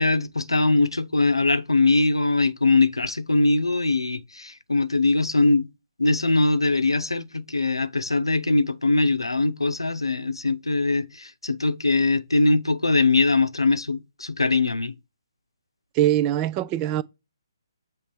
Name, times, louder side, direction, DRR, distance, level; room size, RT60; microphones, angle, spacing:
voice 1, 0.0-5.7 6.0-14.9, left 3 dB, 85° left, 0.7 m, -22 dB
voice 2, 15.9-17.0, right 13 dB, 20° right, 0.3 m, -22 dB
7.0 x 3.2 x 4.7 m
figure-of-eight pair, 140°, 2 cm